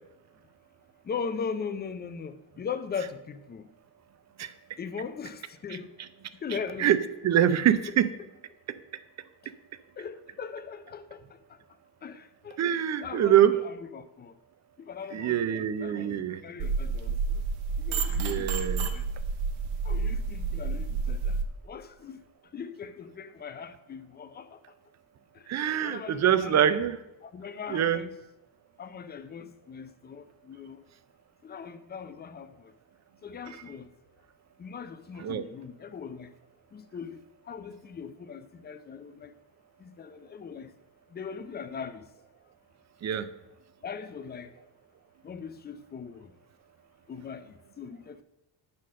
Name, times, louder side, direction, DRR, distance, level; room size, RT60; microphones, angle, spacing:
voice 1, 1.0-3.7 4.8-5.9 6.4-7.0 7.9-8.0 10.0-11.2 12.0-12.7 13.0-14.3 14.8-17.4 17.8-19.0 19.8-21.4 21.6-22.2 22.5-24.6 25.8-26.8 27.2-28.2 28.8-30.8 31.4-32.7 33.2-33.9 34.6-36.3 36.7-37.2 37.5-39.3 39.8-40.7 41.1-42.0 43.8-44.5 45.2-46.3 47.1-48.2, left 6 dB, 25° left, 0.4 m, -39 dB
voice 2, 6.8-8.1 12.6-13.5 15.1-16.4 18.2-18.9 25.5-27.0 27.7-28.0 35.2-35.4 43.0-43.3, right 10 dB, 40° right, 0.5 m, -24 dB
sound 1, 16.6-21.4, right 4 dB, 85° right, 1.0 m, -29 dB
8.9 x 4.3 x 6.3 m
cardioid pair, 140°, 46 cm